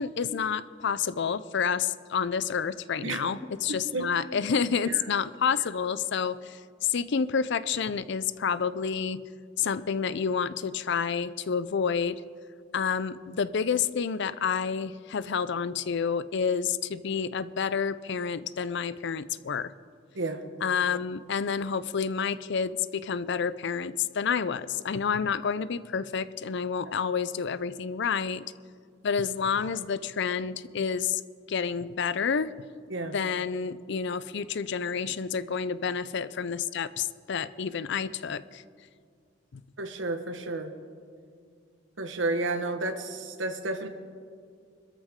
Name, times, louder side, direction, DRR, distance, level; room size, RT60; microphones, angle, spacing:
voice 1, 0.0-9.2 9.6-12.2 12.7-19.7 20.6-28.4 29.0-31.2 31.5-32.6 33.1-38.6 39.5-39.6, left 6 dB, 65° left, 15 dB, 0.5 m, -29 dB
voice 2, 3.7-4.3 4.8-5.0 20.1-20.4 32.9-33.2 39.8-40.7 42.0-43.9, right 2 dB, 75° right, 6 dB, 1.4 m, -32 dB
25.0 x 13.5 x 3.7 m, 2.2 s
head